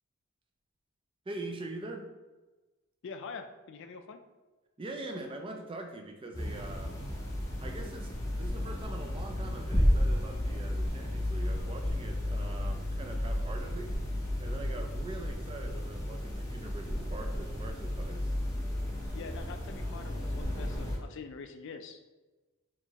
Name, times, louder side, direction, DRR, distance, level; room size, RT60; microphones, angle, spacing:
voice 1, 1.3-2.1 4.8-7.0 7.6-14.0 14.4-18.3, right 2 dB, 25° right, 4 dB, 0.4 m, -43 dB
voice 2, 3.0-4.2 19.1-22.1, left 5 dB, 55° left, 7 dB, 0.3 m, -45 dB
sound 1, 6.3-21.0, left 1 dB, 15° left, 0.7 m, -33 dB
4.3 x 3.0 x 2.8 m, 1.2 s
head